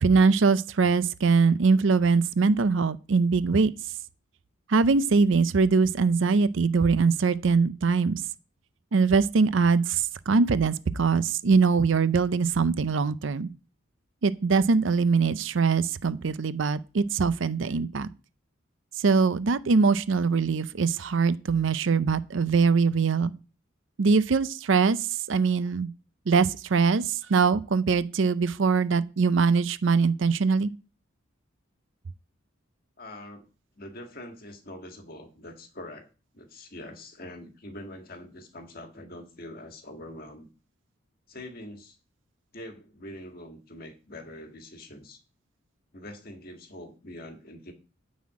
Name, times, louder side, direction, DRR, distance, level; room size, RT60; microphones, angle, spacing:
voice 1, 0.0-3.7 4.7-8.2 8.9-13.5 14.2-18.1 19.0-23.3 24.0-25.9 26.3-30.7, right 4 dB, 65° right, 0.5 m, -22 dB
voice 2, 33.0-33.5 33.7-36.1 36.3-40.5 41.3-42.0 42.5-45.2 45.9-47.7, left 1 dB, 45° left, 1.7 m, -44 dB
9.4 x 4.2 x 7.3 m
head